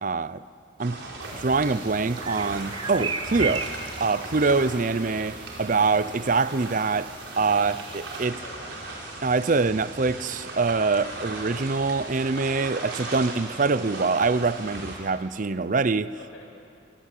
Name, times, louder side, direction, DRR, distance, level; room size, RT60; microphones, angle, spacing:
voice 1, 0.0-0.4 0.8-1.0 1.3-3.7 4.0-8.4 9.2-16.1, right 4 dB, 45° right, 0.6 m, -24 dB
sound 1, 0.8-15.0, right 2 dB, 70° right, 5.1 m, -38 dB
sound 2, 1.2-8.3, right 4 dB, 25° right, 1.0 m, -37 dB
voice 2, 8.2-8.7 11.1-11.2 16.1-16.5, left 2 dB, 75° left, 7.1 m, -48 dB
27.0 x 24.0 x 8.4 m
head